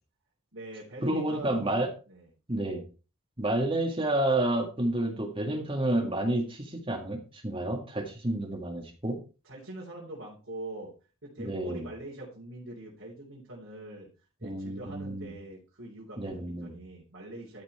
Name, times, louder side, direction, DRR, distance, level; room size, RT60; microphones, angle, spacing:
voice 1, 0.5-1.8 2.1-2.3 9.4-10.9 11.2-14.1 14.4-17.6, right 1 dB, 60° right, -5 dB, 3.6 m, -43 dB
voice 2, 1.0-1.9 2.5-2.8 3.4-9.2 11.4-11.9 14.4-15.3 16.2-16.8, right 1 dB, 25° right, 3 dB, 1.9 m, -30 dB
12.5 x 6.0 x 4.3 m, 0.33 s
head